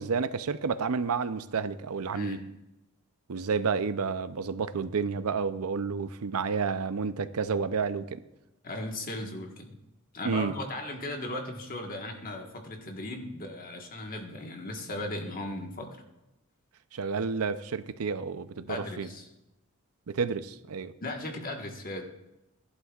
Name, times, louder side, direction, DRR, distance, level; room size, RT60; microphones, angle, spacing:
voice 1, 0.0-2.4 3.3-8.2 10.2-10.6 16.9-19.1 20.1-20.9, right 5 dB, 80° right, 13 dB, 0.5 m, -30 dB
voice 2, 8.6-9.8 10.1-15.9 18.7-19.3 21.0-22.0, left 1 dB, 40° left, 2 dB, 1.5 m, -37 dB
15.5 x 11.5 x 2.4 m, 0.93 s
head